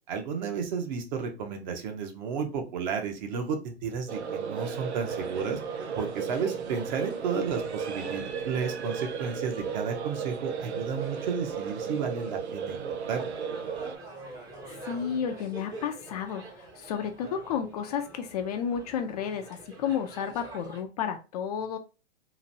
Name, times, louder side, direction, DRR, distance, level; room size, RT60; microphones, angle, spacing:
voice 1, 0.1-5.6 6.0-12.8 13.1-13.3, right 6 dB, 45° right, 4 dB, 0.8 m, -32 dB
sound 1, 4.1-14.0, right 6 dB, 80° right, 0.5 m, -35 dB
sound 2, 5.0-20.8, right 2 dB, 10° right, 0.6 m, -46 dB
voice 2, 14.8-21.8, left 8 dB, 40° left, 6 dB, 0.4 m, -32 dB
3.0 x 2.5 x 2.6 m, 0.31 s
figure-of-eight pair, 115°, 33 cm